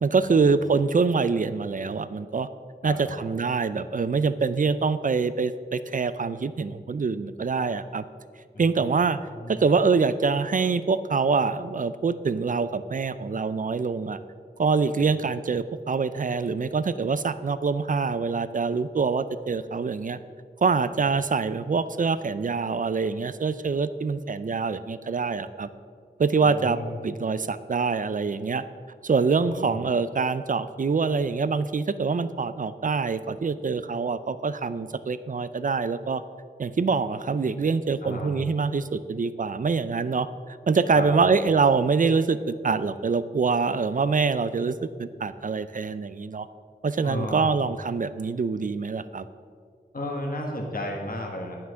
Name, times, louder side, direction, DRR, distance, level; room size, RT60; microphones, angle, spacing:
voice 1, 0.0-2.5 2.8-8.0 8.6-9.2 9.5-14.2 14.6-20.2 20.6-25.7 26.2-28.6 29.0-36.2 36.6-46.5 46.8-49.3, right 4 dB, 50° right, 14 dB, 0.4 m, -25 dB
voice 2, 2.8-3.2 8.5-8.6 9.3-9.6 15.0-15.1 20.9-21.0 26.4-27.0 29.5-29.8 38.0-38.3 40.9-41.4 47.0-47.6 49.9-51.6, left 1 dB, 55° left, 0 dB, 1.4 m, -33 dB
9.6 x 5.8 x 6.3 m, 2.1 s
wide cardioid pair, 60°, 17 cm